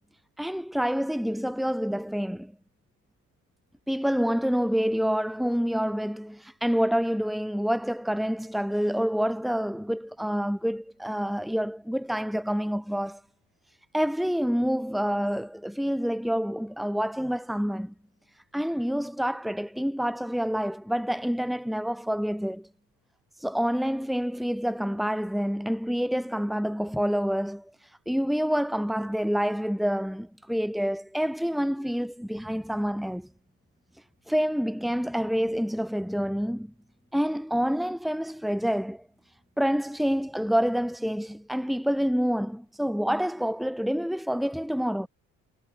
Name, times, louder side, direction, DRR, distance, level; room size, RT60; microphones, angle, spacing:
voice 1, 0.4-2.5 3.9-13.2 13.9-17.9 18.5-22.7 23.4-27.7 28.1-33.3 34.3-36.7 37.1-39.1 39.6-45.1, equal, ahead, 2.9 m, -27 dB
cardioid pair, 115°, 36 cm